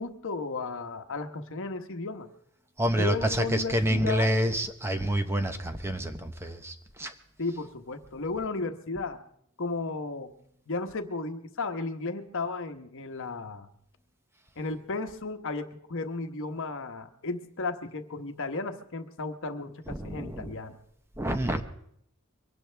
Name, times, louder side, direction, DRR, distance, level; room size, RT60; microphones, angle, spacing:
voice 1, 0.0-2.3 3.0-4.3 7.4-9.2 9.6-10.3 10.7-13.7 14.6-20.8, left 3 dB, 60° left, 7 dB, 1.2 m, -34 dB
voice 2, 2.8-7.1 19.9-20.5 21.2-21.6, equal, 10° right, 7 dB, 1.0 m, -28 dB
23.5 x 17.5 x 3.4 m, 0.71 s
head